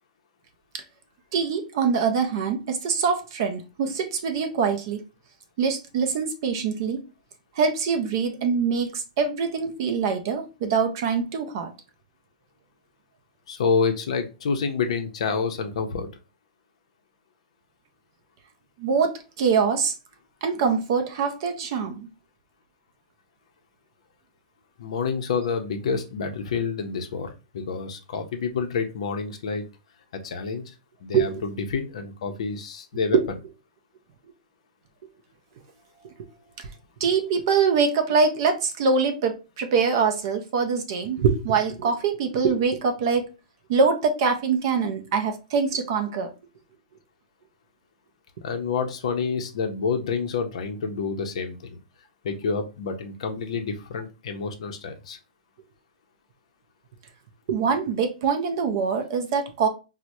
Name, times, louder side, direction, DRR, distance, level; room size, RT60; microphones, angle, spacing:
voice 1, 1.3-5.0 5.6-7.0 7.6-11.7 18.8-20.0 20.4-22.1 31.1-31.3 33.1-33.2 36.6-36.7 37.0-43.3 43.7-46.3 57.5-59.7, right 5 dB, 30° right, 0.4 m, -24 dB
voice 2, 13.5-16.1 24.8-29.6 30.1-30.7 31.0-33.2 48.4-51.8 52.2-55.2, left 5 dB, 50° left, 0.5 m, -28 dB
4.5 x 2.0 x 2.6 m
hypercardioid pair, 180°, 4 cm